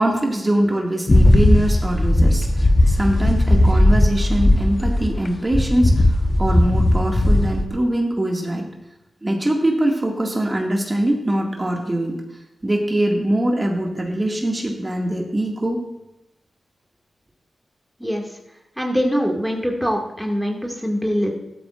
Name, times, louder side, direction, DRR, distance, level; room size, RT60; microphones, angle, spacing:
voice 1, 0.0-8.7 9.2-12.2 12.6-15.8, right 1 dB, 30° right, 0 dB, 2.2 m, -22 dB
sound 1, 1.1-5.3 5.5-7.7, left 1 dB, 35° left, 1.0 m, -16 dB
voice 2, 18.8-21.3, equal, ahead, 0 dB, 2.2 m, -23 dB
14.0 x 12.5 x 2.6 m, 0.91 s
cardioid pair, 45°, 0 cm